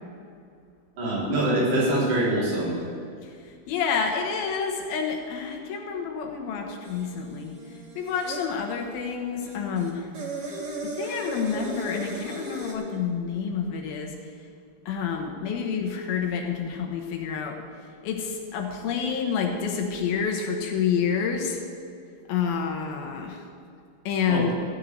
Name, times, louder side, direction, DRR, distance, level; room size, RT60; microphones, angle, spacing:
voice 1, 1.0-2.8 24.3-24.5, right 1 dB, 75° right, -6 dB, 5.5 m, -24 dB
voice 2, 3.2-7.6 8.0-10.1 10.8-14.1 14.9-17.6 18.0-21.6 22.3-23.4 24.1-24.5, left 6 dB, 75° left, 2 dB, 2.8 m, -28 dB
sound 1, 6.8-8.5 9.4-12.7, right 2 dB, 50° right, 1.2 m, -36 dB
15.0 x 5.6 x 9.0 m, 2.4 s
omnidirectional pair, 4.6 m